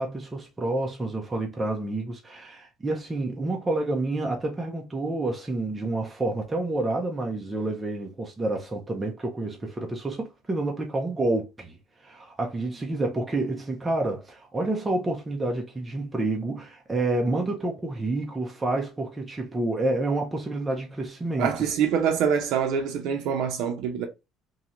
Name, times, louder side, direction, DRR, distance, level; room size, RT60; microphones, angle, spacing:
voice 1, 0.0-11.8 12.0-21.5, right 2 dB, 10° right, 0.5 m, -29 dB
voice 2, 21.4-24.1, right 7 dB, 60° right, 0.6 m, -25 dB
3.0 x 2.7 x 2.4 m
cardioid pair, 175°, 0 cm